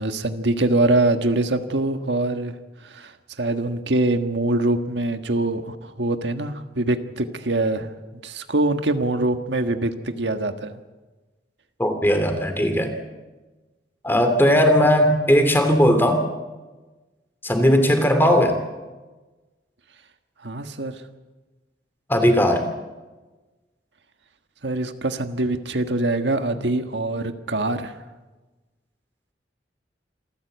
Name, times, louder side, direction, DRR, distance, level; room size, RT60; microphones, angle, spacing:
voice 1, 0.0-2.5 2.8-3.1 3.4-10.8 20.4-21.0 24.6-27.9, right 2 dB, 90° right, 7 dB, 1.5 m, -24 dB
voice 2, 11.8-12.9 14.0-16.2 17.4-18.6 22.1-22.7, equal, 15° left, 7 dB, 2.8 m, -18 dB
27.0 x 15.0 x 8.1 m, 1.2 s
head